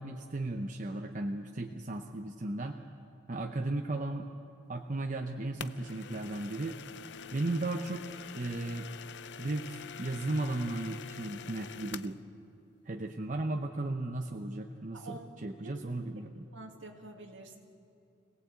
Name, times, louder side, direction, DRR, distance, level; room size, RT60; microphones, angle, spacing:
voice 1, 0.0-2.8 3.3-4.3 4.7-6.8 7.3-8.9 9.4-12.2 12.9-16.5, right 2 dB, 40° right, 3 dB, 0.8 m, -35 dB
sound 1, 5.6-12.2, left 7 dB, 60° left, 0.5 m, -46 dB
voice 2, 14.9-15.3 15.6-15.8 16.5-17.6, right 2 dB, 70° right, 3 dB, 2.1 m, -47 dB
25.5 x 18.0 x 8.3 m, 2.8 s
head